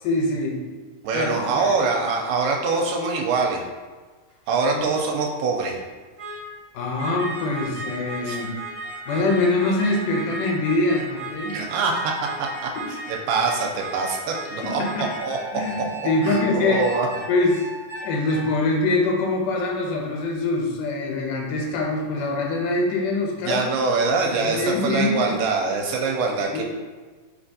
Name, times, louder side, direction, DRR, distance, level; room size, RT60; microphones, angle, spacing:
voice 1, 0.0-0.6 1.1-1.7 4.7-4.8 6.7-8.5 9.1-11.6 12.8-12.9 14.6-15.1 15.5-16.9 17.3-17.6 18.0-23.7 24.3-25.4 26.5-26.6, left 2 dB, 90° left, -1 dB, 2.2 m, -24 dB
voice 2, 1.0-3.7 4.5-5.8 8.2-8.4 11.5-12.1 12.6-12.7 13.1-15.4 16.2-17.1 23.4-26.6, right 4 dB, 85° right, 1 dB, 2.1 m, -24 dB
sound 1, 4.3-4.4 6.2-6.5 7.0-18.6, right 2 dB, 65° right, 0.9 m, -35 dB
4.8 x 3.3 x 2.6 m, 1.4 s
omnidirectional pair, 3.7 m